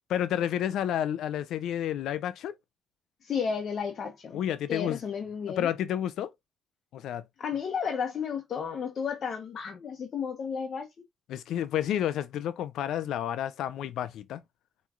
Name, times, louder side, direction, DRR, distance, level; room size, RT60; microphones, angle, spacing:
voice 1, 0.1-2.6 4.3-5.0 5.6-6.3 6.9-7.3 11.3-14.4, left 10 dB, 80° left, 0.4 m, -30 dB
voice 2, 3.2-4.4 4.7-5.7 7.4-11.1, left 6 dB, 55° left, 0.9 m, -33 dB
5.7 x 3.1 x 2.4 m
cardioid pair, 90°, 0 cm